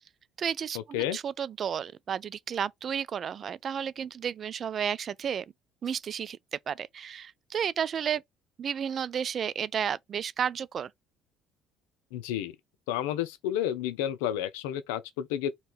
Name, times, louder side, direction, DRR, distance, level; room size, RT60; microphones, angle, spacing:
voice 1, 0.4-5.4 5.8-8.2 8.6-10.9, right 8 dB, 45° right, 0.3 m, -32 dB
voice 2, 12.1-12.5 12.9-15.5, left 11 dB, 70° left, 0.5 m, -31 dB
3.3 x 2.9 x 4.3 m
figure-of-eight pair, 55°, 0 cm